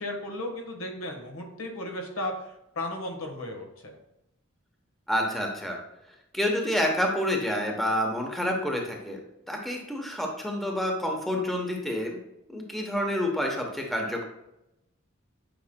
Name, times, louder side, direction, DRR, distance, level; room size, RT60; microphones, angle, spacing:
voice 1, 0.0-3.9, left 1 dB, 85° left, 2 dB, 1.4 m, -35 dB
voice 2, 5.1-5.8 6.3-9.2 9.5-12.2 12.5-14.2, equal, ahead, 1 dB, 0.9 m, -28 dB
8.6 x 5.4 x 2.2 m, 0.88 s
head